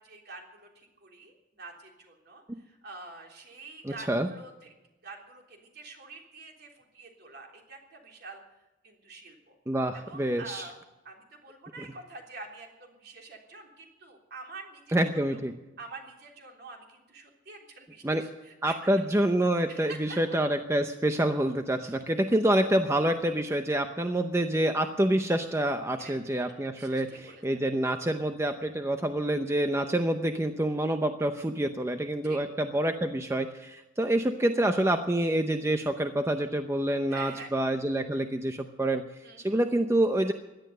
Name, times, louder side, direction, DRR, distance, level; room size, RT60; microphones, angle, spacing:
voice 1, 0.0-4.7 5.0-8.4 8.8-9.5 9.9-10.7 11.0-15.4 15.8-19.1 19.7-20.2 21.8-22.0 26.0-26.1 26.7-27.4 32.2-32.4 37.1-37.5 39.2-39.6, right 3 dB, 55° right, 1 dB, 3.4 m, -47 dB
voice 2, 3.8-4.3 9.7-10.7 14.9-15.5 18.0-18.2 18.6-39.0 39.4-40.3, right 1 dB, 15° right, 6 dB, 0.7 m, -27 dB
17.0 x 11.5 x 6.7 m, 1.0 s
head